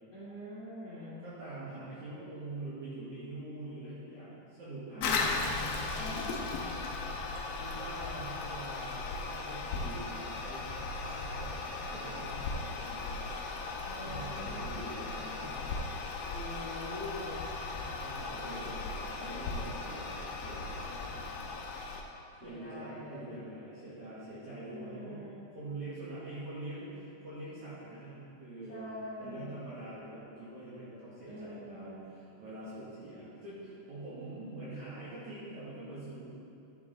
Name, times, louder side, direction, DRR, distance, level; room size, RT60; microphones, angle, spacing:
voice 1, 0.1-1.2 4.9-5.4 5.9-6.4 13.8-14.6 16.3-17.4 22.4-23.3 24.7-25.4 28.7-29.6 31.3-32.1, left 1 dB, 35° left, -12 dB, 2.5 m, -44 dB
voice 2, 1.2-5.6 7.5-10.7 11.0-11.5 11.9-13.4 14.0-15.7 18.0-21.6 22.0-28.9 29.2-36.2, right 2 dB, 50° right, -11 dB, 2.8 m, -45 dB
Toilet flush, 5.0-22.0, left 3 dB, 75° left, 2.3 m, -37 dB
11.0 x 6.8 x 4.1 m, 2.7 s
omnidirectional pair, 4.9 m